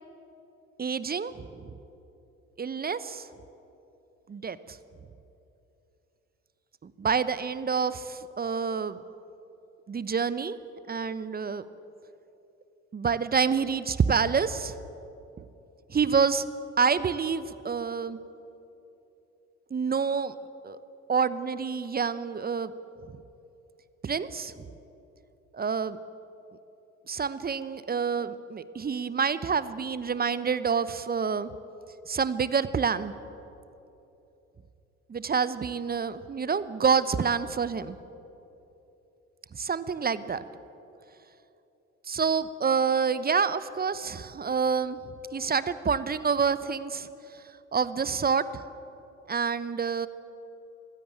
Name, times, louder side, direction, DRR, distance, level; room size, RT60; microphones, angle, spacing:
voice 1, 0.8-1.7 2.6-3.3 4.3-4.8 6.8-9.0 9.9-10.6 10.9-11.7 12.9-14.7 15.9-16.4 16.8-18.2 19.7-20.3 20.6-20.8 21.1-22.7 24.0-24.5 25.5-26.0 27.1-31.5 32.1-33.1 35.1-38.0 39.5-40.4 42.0-45.0 45.3-47.1 47.3-47.4 47.7-48.6 49.3-50.1, right 6 dB, 25° right, 15 dB, 0.9 m, -27 dB
20.5 x 16.0 x 9.0 m, 2.9 s
figure-of-eight pair, 50°, 35 cm